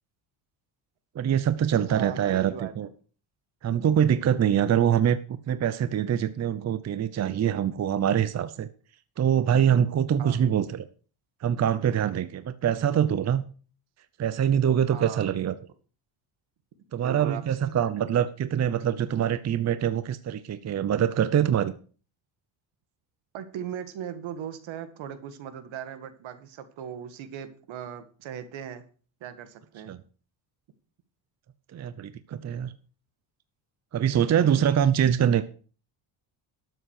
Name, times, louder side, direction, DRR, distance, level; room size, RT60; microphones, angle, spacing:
voice 1, 1.2-2.9 3.6-8.7 9.2-10.9 11.4-13.5 14.2-15.5 16.9-21.7 29.9-30.0 31.7-32.7 33.9-35.4, right 9 dB, 35° right, 13 dB, 0.7 m, -24 dB
voice 2, 1.7-2.9 10.2-10.5 14.9-15.4 17.0-17.9 23.3-28.8 29.2-29.9 32.3-32.4, right 9 dB, 70° right, 10 dB, 2.1 m, -38 dB
12.5 x 7.7 x 6.6 m, 0.40 s
cardioid pair, 130°, 48 cm